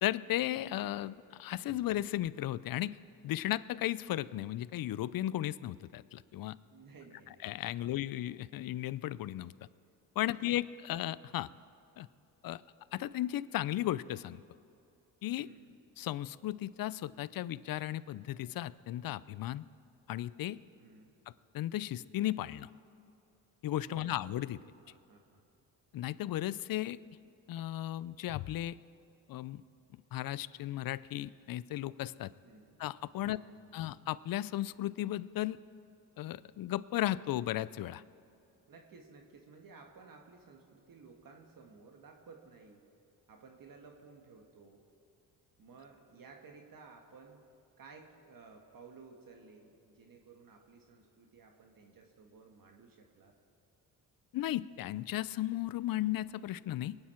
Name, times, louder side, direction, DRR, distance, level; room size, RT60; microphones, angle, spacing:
voice 1, 0.0-3.0 3.2-6.6 7.4-9.5 10.2-11.5 12.0-12.1 12.4-12.6 12.9-14.4 15.2-15.5 16.0-19.6 20.1-20.6 21.5-22.7 23.6-24.6 25.9-27.0 27.5-28.7 29.3-29.6 30.1-32.3 32.8-33.4 33.7-35.6 36.2-38.0 54.3-57.0, left 14 dB, 55° left, 18 dB, 0.5 m, -35 dB
voice 2, 6.7-7.4 7.8-8.0 10.3-10.5 15.4-15.7 20.8-21.1 23.9-24.2 24.8-25.4 32.4-32.8 33.1-33.6 38.7-42.8 43.3-44.9 45.6-47.4 47.8-53.3, right 4 dB, 55° right, 3 dB, 1.7 m, -56 dB
23.0 x 9.6 x 4.5 m, 2.7 s
cardioid pair, 80°, 41 cm